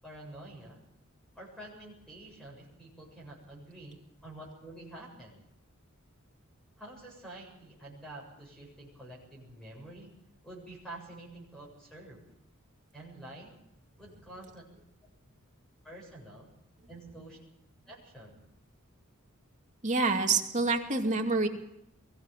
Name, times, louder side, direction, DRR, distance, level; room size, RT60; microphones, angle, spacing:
voice 1, 0.0-0.8 1.3-4.0 4.2-5.4 6.8-10.1 10.4-12.2 12.9-13.5 14.0-14.6 15.8-16.5 16.9-17.4 17.9-18.5, right 1 dB, 5° left, -3 dB, 7.5 m, -48 dB
voice 2, 19.8-21.5, right 3 dB, 35° right, 2 dB, 2.7 m, -27 dB
23.5 x 15.0 x 7.6 m, 0.83 s
head